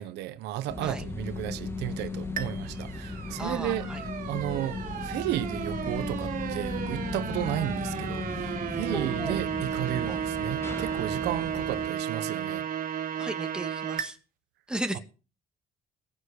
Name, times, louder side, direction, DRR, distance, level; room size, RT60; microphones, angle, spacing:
voice 1, 0.0-3.9 4.3-12.7, right 14 dB, 85° right, 1.1 m, -34 dB
sound 1, 0.7-11.9, left 3 dB, 15° left, 2.1 m, -36 dB
sound 2, 2.4-14.1, right 9 dB, 55° right, 2.8 m, -34 dB
voice 2, 3.4-4.0 8.9-9.4 10.1-10.2 13.2-14.2 14.7-15.0, right 1 dB, 5° right, 2.3 m, -35 dB
19.0 x 6.5 x 8.4 m
cardioid pair, 110°, 17 cm